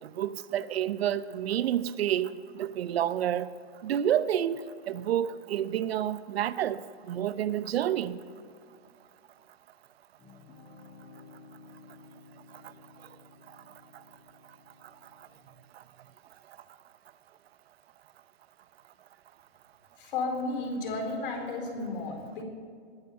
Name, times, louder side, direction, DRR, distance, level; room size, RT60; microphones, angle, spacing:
voice 1, 0.0-3.5 3.8-8.2, right 10 dB, 75° right, 15 dB, 0.8 m, -29 dB
sound 1, 10.2-15.7, left 4 dB, 15° left, 2.7 m, -54 dB
voice 2, 20.0-22.4, left 3 dB, 55° left, 3 dB, 4.2 m, -33 dB
20.0 x 9.7 x 6.7 m, 2.3 s
hypercardioid pair, 165°, 31 cm